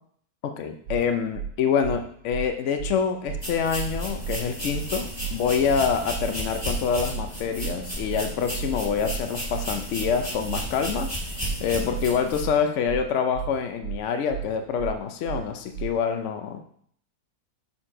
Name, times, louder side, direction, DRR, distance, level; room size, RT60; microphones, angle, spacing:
voice 1, 0.4-11.1 11.6-16.6, left 6 dB, 85° left, 7 dB, 0.6 m, -26 dB
sound 1, 0.9-1.0 1.3-1.5 1.8-2.0 2.3-2.5 2.8-2.9 3.3-3.4 3.7-3.9 4.2-4.4 4.7-4.9 5.2-5.3 5.7-5.8 6.1-6.3 6.6-6.8 7.1-7.3 7.6-7.7 8.1-8.2 8.5-8.7 9.0-9.2 9.5-9.7 10.0-10.1 10.5-10.6 10.9-11.1 11.4-11.6 11.9-12.1 12.4-12.5 12.9-13.0 13.3-13.5 13.8-14.0 14.3-14.5 14.8-14.9 15.3-15.4 15.7-15.9, right 9 dB, 85° right, 1.5 m, -32 dB
sound 2, 3.4-12.4, equal, 15° left, 2.2 m, -33 dB
6.5 x 4.3 x 4.3 m, 0.63 s
omnidirectional pair, 1.9 m